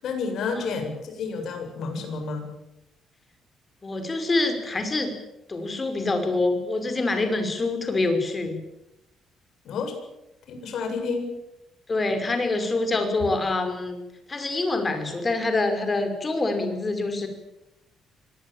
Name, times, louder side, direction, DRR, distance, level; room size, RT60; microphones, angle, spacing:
voice 1, 0.0-2.5 9.6-10.0 10.5-11.3, left 4 dB, 65° left, 5 dB, 7.4 m, -30 dB
voice 2, 3.8-5.1 5.5-8.6 11.9-14.0 14.3-17.3, left 2 dB, 25° left, 7 dB, 5.5 m, -25 dB
24.5 x 19.0 x 9.0 m, 0.92 s
cardioid pair, 135°, 0 cm